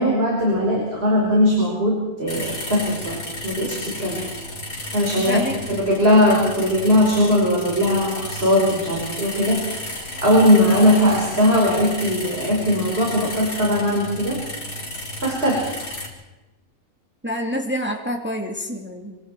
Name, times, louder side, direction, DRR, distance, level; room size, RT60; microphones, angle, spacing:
voice 1, 0.0-4.2 4.9-5.4 5.7-9.8 10.2-14.4 15.2-15.9, left 1 dB, 40° right, -3 dB, 5.5 m, -19 dB
sound 1, 2.3-16.1, left 1 dB, 90° left, 5.3 m, -33 dB
voice 2, 5.2-5.6 17.2-19.2, equal, 5° right, 2 dB, 2.3 m, -27 dB
27.0 x 25.0 x 4.7 m, 1.1 s
omnidirectional pair, 1.5 m